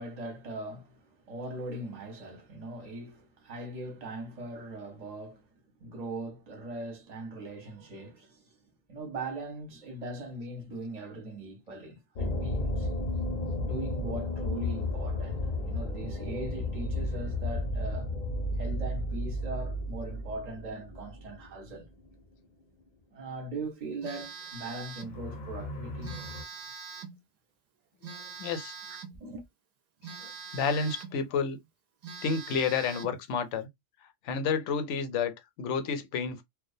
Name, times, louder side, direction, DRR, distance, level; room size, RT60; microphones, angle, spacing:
voice 1, 0.0-5.5 5.8-8.5 8.9-12.9 13.6-18.1 18.6-21.9 23.1-26.2 29.2-29.4, right 2 dB, 40° right, 0.8 m, -40 dB
sound 1, 12.1-22.2 22.4-22.5 25.0-26.4, left 1 dB, 50° left, 0.6 m, -33 dB
Telephone, 24.0-25.2 26.0-27.2 28.0-29.2 30.0-31.2 31.6-31.7 32.0-33.2, right 5 dB, 55° right, 0.4 m, -43 dB
voice 2, 28.0-28.8 30.1-31.6 32.2-33.7 34.2-36.4, left 5 dB, 75° left, 0.9 m, -31 dB
2.3 x 2.1 x 2.5 m
omnidirectional pair, 1.2 m